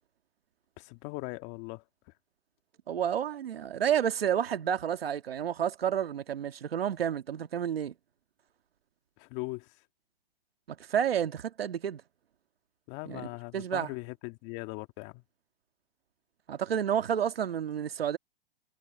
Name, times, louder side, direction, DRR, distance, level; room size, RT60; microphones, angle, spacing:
voice 1, 0.8-1.8 9.2-9.8 12.9-15.2, left 25 dB, 40° left, 1.8 m, -40 dB
voice 2, 2.9-7.9 10.7-12.0 13.1-13.2 13.5-13.9 16.5-18.2, right 9 dB, 85° right, 1.9 m, -30 dB
hypercardioid pair, 135°, 29 cm